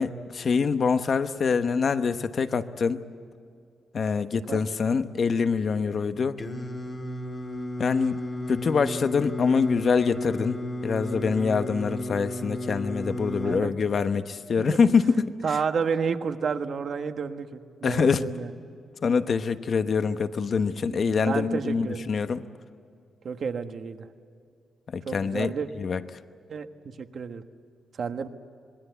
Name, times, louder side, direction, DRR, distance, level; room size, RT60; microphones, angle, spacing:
voice 1, 0.0-3.0 3.9-6.4 7.8-8.2 8.5-15.2 17.8-18.3 19.0-22.4 24.9-25.5 25.8-26.0, left 5 dB, 50° left, 10 dB, 1.1 m, -25 dB
Singing, 6.4-13.6, left 1 dB, 25° left, 1.9 m, -33 dB
voice 2, 15.4-18.5 20.9-22.1 23.2-24.1 25.0-25.7 26.5-27.4 28.0-28.3, right 6 dB, 55° right, 7 dB, 1.4 m, -31 dB
26.5 x 20.5 x 8.2 m, 2.3 s
cardioid pair, 115°, 0 cm